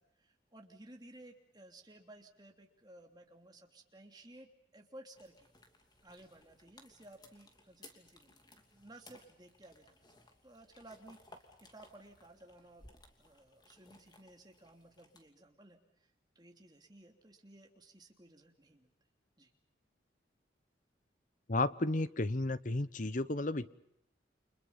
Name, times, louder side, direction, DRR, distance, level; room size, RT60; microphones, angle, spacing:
voice 1, 0.0-5.5 6.0-10.0 10.4-12.9 13.2-18.9 19.4-19.5, right 1 dB, 20° right, 3 dB, 2.9 m, -57 dB
sound 1, 5.1-15.3, left 2 dB, 20° left, 2.9 m, -61 dB
voice 2, 21.5-23.7, left 2 dB, 45° left, 16 dB, 0.9 m, -33 dB
30.0 x 26.5 x 5.6 m, 0.78 s
head